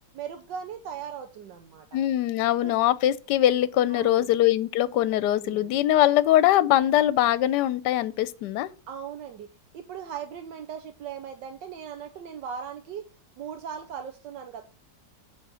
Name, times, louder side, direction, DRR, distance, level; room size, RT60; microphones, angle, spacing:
voice 1, 0.1-1.8 2.6-2.7 3.9-4.4 5.4-5.8 8.9-9.5 9.7-13.0 13.4-14.6, right 8 dB, 80° right, 1.5 m, -38 dB
voice 2, 1.9-8.7, left 13 dB, 75° left, 1.2 m, -22 dB
7.5 x 4.1 x 6.1 m
omnidirectional pair, 1.9 m